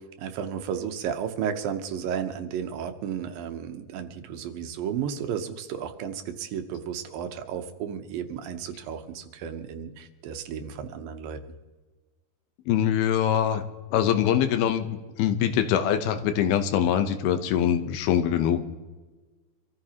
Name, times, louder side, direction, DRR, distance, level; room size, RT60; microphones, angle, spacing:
voice 1, 0.2-11.4, right 8 dB, 75° right, 7 dB, 2.6 m, -33 dB
voice 2, 12.7-13.6 13.9-18.7, left 9 dB, 85° left, 8 dB, 2.9 m, -23 dB
25.5 x 14.5 x 2.9 m, 1.3 s
omnidirectional pair, 4.3 m